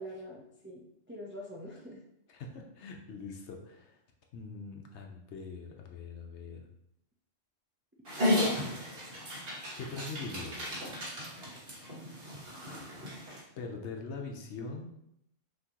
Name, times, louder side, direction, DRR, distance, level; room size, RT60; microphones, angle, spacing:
voice 1, 0.0-2.0, equal, 20° right, -3 dB, 0.3 m, -45 dB
voice 2, 2.3-4.0 4.3-6.7 9.5-10.7 13.6-14.8, left 4 dB, 65° left, 2 dB, 0.9 m, -42 dB
Dog, 8.1-13.4, left 1 dB, 50° right, 1.5 m, -34 dB
5.9 x 2.9 x 2.9 m, 0.79 s
omnidirectional pair, 1.3 m